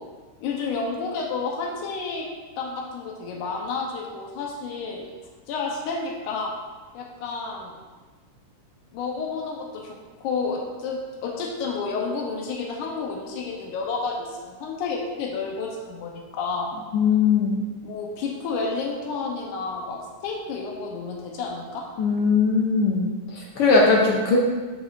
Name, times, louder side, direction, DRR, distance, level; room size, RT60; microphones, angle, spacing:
voice 1, 0.4-2.3 2.6-5.1 5.5-6.5 6.9-7.7 8.9-16.7 17.8-21.8, left 4 dB, 90° left, 0 dB, 2.3 m, -30 dB
voice 2, 16.9-17.6 22.0-23.1 23.3-24.4, left 4 dB, 70° left, -2 dB, 1.4 m, -20 dB
13.0 x 5.2 x 2.6 m, 1.4 s
omnidirectional pair, 3.5 m